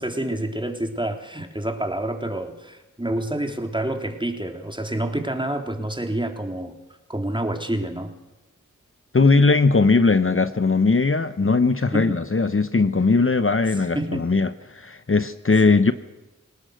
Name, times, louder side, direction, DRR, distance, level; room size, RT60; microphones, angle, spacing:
voice 1, 0.0-6.8 7.1-8.1 11.9-12.2 13.8-14.2 15.7-15.9, right 1 dB, 15° right, 4 dB, 3.4 m, -28 dB
voice 2, 9.1-15.9, left 4 dB, 40° left, 11 dB, 0.9 m, -19 dB
28.0 x 18.5 x 6.4 m, 1.0 s
wide cardioid pair, 50°, 31 cm